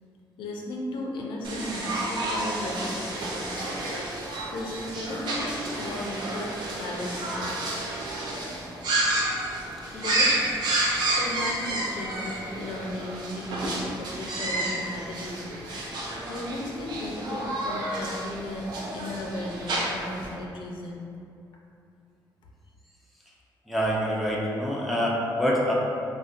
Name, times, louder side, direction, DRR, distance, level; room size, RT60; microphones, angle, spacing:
voice 1, 0.4-3.6 4.5-7.5 9.9-10.5 11.1-15.9 16.3-21.0, left 1 dB, 90° left, -1 dB, 0.5 m, -35 dB
sound 1, 1.4-20.3, right 2 dB, 65° right, 0.5 m, -30 dB
voice 2, 23.7-25.7, equal, ahead, -4 dB, 0.3 m, -26 dB
3.9 x 2.1 x 2.5 m, 2.5 s
wide cardioid pair, 170°, 8 cm